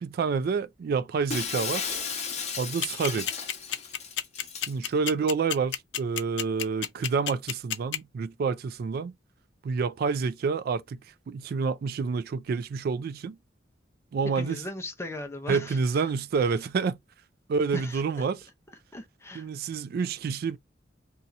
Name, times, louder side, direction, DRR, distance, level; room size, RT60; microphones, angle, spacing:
voice 1, 0.0-1.9 2.6-3.3 4.7-9.1 9.6-11.0 11.3-13.4 14.1-14.6 15.5-17.0 17.5-18.4 19.3-20.6, right 5 dB, 55° right, 0.3 m, -28 dB
Shatter, 1.3-4.7, left 5 dB, 40° left, 0.8 m, -34 dB
sound 1, 2.8-8.0, left 10 dB, 75° left, 0.5 m, -29 dB
voice 2, 14.3-16.1 16.4-16.5 17.7-18.2 18.9-19.5, left 1 dB, 15° left, 0.5 m, -38 dB
2.7 x 2.4 x 3.9 m
head